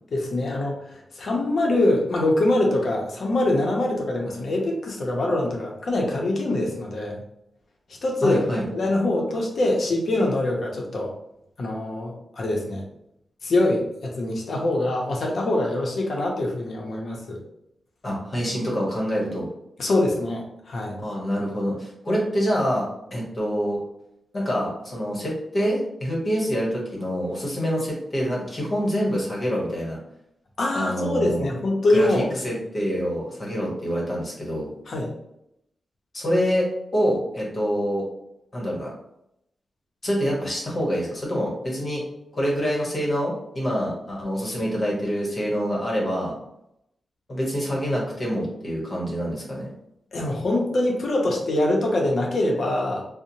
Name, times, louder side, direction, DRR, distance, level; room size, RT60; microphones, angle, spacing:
voice 1, 0.1-7.2 8.0-8.4 8.7-11.1 11.6-12.8 13.4-17.4 19.8-21.0 30.6-32.3 34.9-35.1 50.1-53.1, left 1 dB, 70° left, -1 dB, 0.6 m, -24 dB
voice 2, 8.2-8.6 18.0-19.5 21.0-23.8 24.3-30.0 30.7-31.5 31.9-34.7 36.1-38.0 38.5-38.9 40.0-42.0 42.3-46.3 47.3-49.7, equal, 45° left, -3 dB, 1.0 m, -26 dB
2.7 x 2.0 x 2.7 m, 0.80 s
cardioid pair, 60°, 0 cm